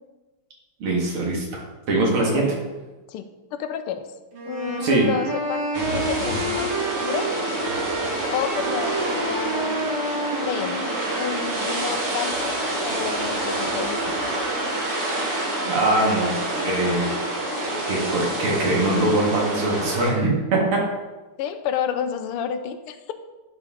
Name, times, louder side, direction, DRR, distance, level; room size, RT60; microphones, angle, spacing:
voice 1, 0.8-1.5 1.9-2.5 4.8-5.1 15.6-17.1 17.6-20.6, right 2 dB, 75° right, -2 dB, 2.7 m, -22 dB
voice 2, 2.2-2.6 3.1-4.1 4.4-7.3 8.3-9.9 10.4-10.8 11.2-12.6 12.8-14.2 21.4-23.1, left 8 dB, 90° left, 9 dB, 1.6 m, -30 dB
sound 1, 4.3-11.8, right 2 dB, 55° right, 2.1 m, -30 dB
sound 2, 5.7-20.1, right 1 dB, 35° right, 1.7 m, -27 dB
10.5 x 5.1 x 3.7 m, 1.2 s
omnidirectional pair, 2.4 m